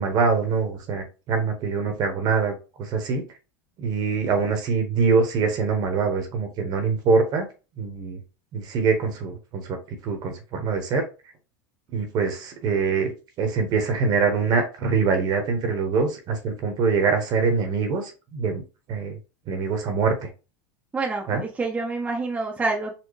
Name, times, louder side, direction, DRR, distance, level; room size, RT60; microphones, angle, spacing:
voice 1, 0.0-3.2 3.8-7.5 7.8-8.2 8.5-9.8 10.0-11.0 11.9-13.1 13.4-18.6 18.9-19.2 19.5-20.3 21.3-21.4, right 5 dB, 45° right, 1.1 m, -24 dB
voice 2, 20.9-22.9, right 3 dB, 15° right, 0.7 m, -27 dB
4.3 x 2.2 x 3.2 m
supercardioid pair, 130°, 10 cm